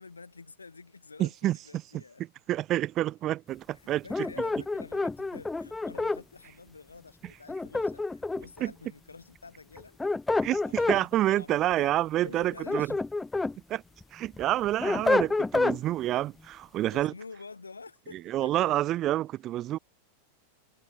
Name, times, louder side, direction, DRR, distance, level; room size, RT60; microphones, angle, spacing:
voice 1, 0.0-2.2 4.0-10.0 10.4-11.9 12.2-12.9 16.9-19.1, left 4 dB, 75° left, 4.3 m, -48 dB
voice 2, 1.2-1.6 1.9-2.0 2.5-4.0 8.6-8.7 10.4-12.9 13.7-13.8 14.1-17.1 18.3-19.8, right 14 dB, 35° right, 1.3 m, -28 dB
sound 1, 4.1-6.2 7.5-8.6 9.8-11.0 12.4-13.5 14.0-15.8, left 3 dB, 10° left, 0.6 m, -28 dB
figure-of-eight pair, 90°, 0 cm